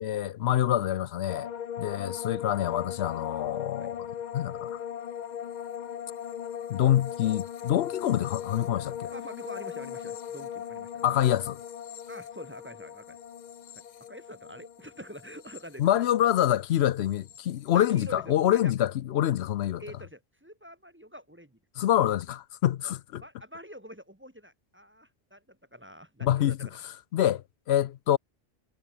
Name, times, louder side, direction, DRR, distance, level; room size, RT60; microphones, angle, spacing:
voice 1, 0.0-1.5 1.8-4.0 4.3-4.8 6.7-9.1 11.0-11.6 15.8-19.8 21.8-23.2 26.2-26.6 27.1-28.2, left 11 dB, 80° left, 0.9 m, -26 dB
sound 1, 1.3-16.5 16.8-17.4, left 9 dB, 50° left, 0.7 m, -39 dB
voice 2, 9.1-11.0 12.1-13.2 13.7-13.8 14.1-15.9 17.7-18.7 19.8-21.6 23.2-26.8, equal, 10° right, 1.2 m, -46 dB
omnidirectional pair, 1.1 m